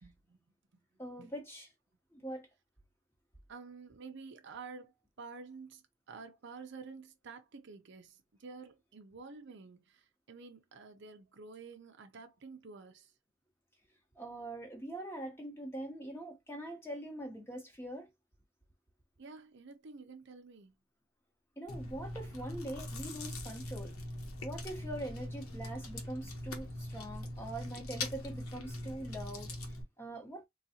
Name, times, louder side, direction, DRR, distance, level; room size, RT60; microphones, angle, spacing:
voice 1, 0.0-0.4 1.2-1.3 3.5-13.1 19.2-20.7, right 4 dB, 55° right, 0.5 m, -50 dB
voice 2, 1.0-1.7 2.1-2.5 14.2-18.1 21.6-23.9 24.4-30.4, right 1 dB, 10° left, 1.0 m, -43 dB
Chewing mastication, 21.7-29.8, left 1 dB, 80° left, 1.0 m, -42 dB
3.9 x 2.3 x 2.7 m
head